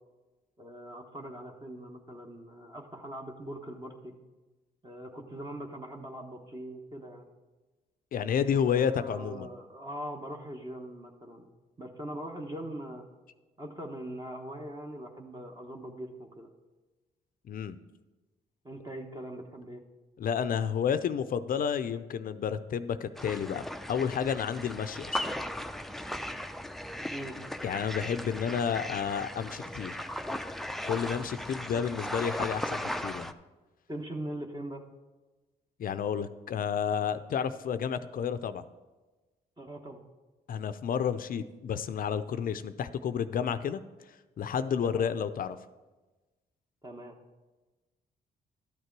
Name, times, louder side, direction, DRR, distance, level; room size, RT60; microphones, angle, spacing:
voice 1, 0.6-4.1 4.8-7.3 8.6-11.5 11.8-13.0 13.6-16.5 18.6-19.8 27.1-27.4 33.9-34.8 39.6-40.0 44.8-45.1 46.8-47.2, right 1 dB, 25° right, 2 dB, 1.2 m, -41 dB
voice 2, 8.1-9.5 17.5-17.8 20.2-25.2 27.6-30.0 30.8-33.3 35.8-38.6 40.5-43.8 44.4-45.6, left 7 dB, 55° left, 13 dB, 0.5 m, -31 dB
sound 1, 23.2-33.3, left 1 dB, ahead, 0.5 m, -37 dB
12.0 x 6.6 x 4.6 m, 1.2 s
supercardioid pair, 65°, 18 cm